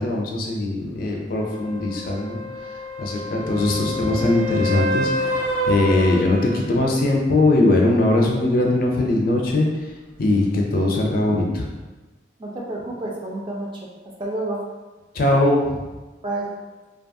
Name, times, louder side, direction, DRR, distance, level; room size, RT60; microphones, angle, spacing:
voice 1, 0.0-2.4 3.0-9.7 10.2-11.7 15.1-15.8, left 2 dB, 50° left, 0 dB, 0.4 m, -20 dB
sound 1, 1.3-7.0 11.1-11.2, left 1 dB, 75° right, 0.6 m, -28 dB
voice 2, 12.4-13.7 14.2-14.6 16.2-16.5, right 2 dB, 25° right, -2 dB, 0.4 m, -29 dB
2.7 x 2.3 x 2.6 m, 1.2 s
head